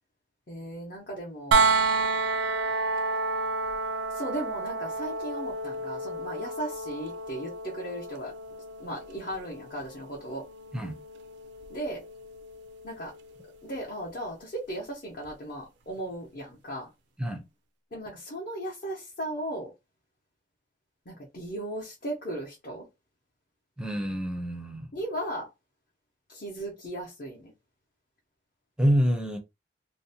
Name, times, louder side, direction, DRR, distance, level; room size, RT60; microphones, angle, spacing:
voice 1, 0.5-1.7 4.1-8.3 8.8-10.4 11.7-12.0 12.8-13.1 13.6-16.9 17.9-19.7 21.1-22.9 24.9-25.5 26.3-27.5, right 1 dB, 45° left, 0.7 m, -36 dB
sound 1, 1.5-13.3 15.2-15.3, right 3 dB, 65° right, 0.3 m, -30 dB
voice 2, 23.8-24.9 28.8-29.4, equal, 5° right, 0.5 m, -27 dB
2.6 x 2.1 x 2.7 m
head